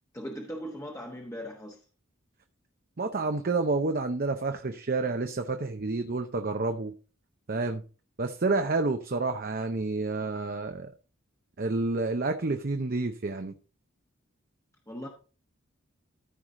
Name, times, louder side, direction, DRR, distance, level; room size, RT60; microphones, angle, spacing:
voice 1, 0.1-1.8 14.9-15.1, equal, 15° left, 0 dB, 1.1 m, -39 dB
voice 2, 3.0-6.9 7.5-7.8 8.2-10.9 11.6-13.5, right 3 dB, 45° right, 6 dB, 0.7 m, -29 dB
13.5 x 4.8 x 3.7 m, 0.36 s
head